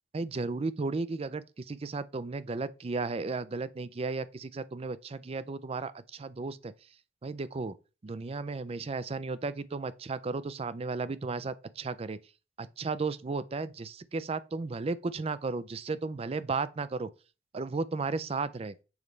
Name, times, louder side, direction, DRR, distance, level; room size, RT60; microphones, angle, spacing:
voice 1, 0.1-6.7 7.2-7.7 8.0-12.2 12.6-17.1 17.5-18.7, right 3 dB, 30° right, 0.4 m, -34 dB
7.1 x 5.4 x 3.2 m
head